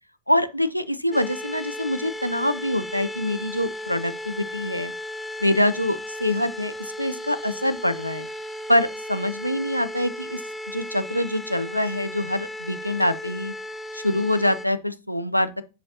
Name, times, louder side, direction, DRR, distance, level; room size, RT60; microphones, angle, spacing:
voice 1, 0.3-4.9 5.4-8.3 8.7-10.4 10.7-13.5 13.9-15.6, left 1 dB, 90° left, 0.5 m, -25 dB
sound 1, 1.1-14.7, left 1 dB, 5° left, 0.5 m, -35 dB
9.1 x 5.1 x 2.8 m
figure-of-eight pair, 90°, 0 cm